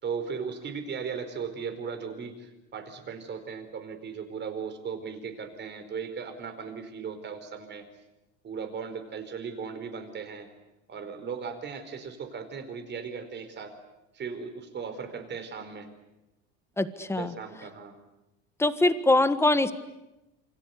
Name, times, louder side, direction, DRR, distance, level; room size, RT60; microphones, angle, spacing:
voice 1, 0.0-7.8 8.4-10.5 10.9-13.7 14.1-15.9 17.1-17.9, right 6 dB, 30° right, 8 dB, 4.5 m, -37 dB
voice 2, 16.8-17.3 18.6-19.7, left 2 dB, 5° left, 11 dB, 1.4 m, -23 dB
28.0 x 25.5 x 8.4 m, 0.96 s
cardioid pair, 135°, 33 cm